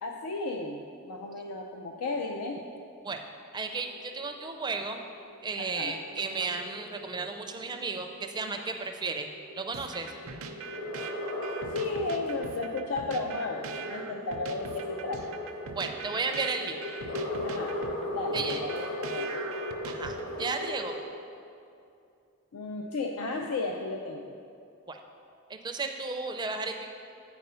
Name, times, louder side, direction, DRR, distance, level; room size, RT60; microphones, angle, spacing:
voice 1, 0.0-2.6 5.6-5.9 11.7-15.2 17.4-17.8 18.1-19.4 22.5-24.3, left 3 dB, 90° left, 2 dB, 0.5 m, -34 dB
voice 2, 3.5-5.0 5.4-9.3 9.6-10.1 15.8-16.8 18.3-18.6 19.9-21.0 24.9-25.0 25.5-26.9, right 4 dB, 20° right, 5 dB, 0.4 m, -34 dB
sound 1, 3.7-21.0, left 1 dB, 60° left, 1.2 m, -38 dB
sound 2, 9.7-20.5, right 5 dB, 70° right, 0.5 m, -42 dB
8.8 x 4.6 x 5.5 m, 2.5 s
head